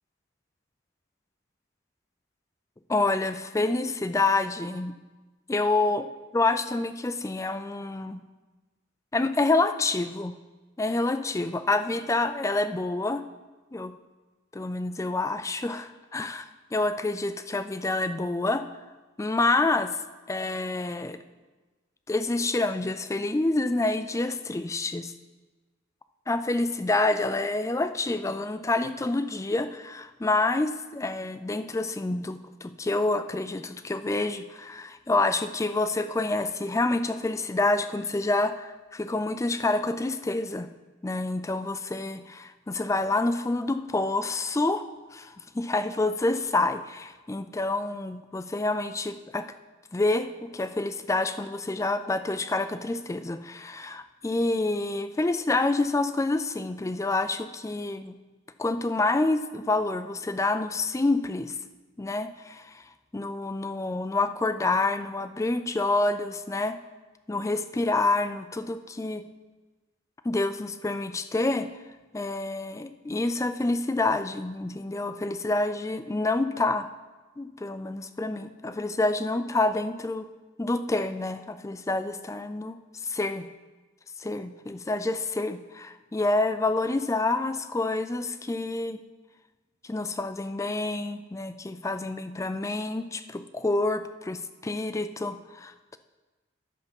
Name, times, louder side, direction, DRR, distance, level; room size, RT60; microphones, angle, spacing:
voice 1, 2.9-4.9 5.5-6.1 6.3-8.2 9.1-10.3 10.8-13.2 13.7-13.9 14.5-18.6 19.2-19.9 20.3-21.2 22.1-25.1 26.3-40.7 41.0-44.9 45.1-49.5 49.9-58.2 58.6-61.5 62.0-62.8 63.1-66.8 67.3-69.2 70.2-71.7 72.1-76.9 77.4-80.3 80.6-82.8 83.0-83.5 84.2-89.0 89.8-96.0, left 2 dB, 15° left, 11 dB, 0.3 m, -28 dB
10.5 x 6.8 x 5.3 m, 1.2 s
head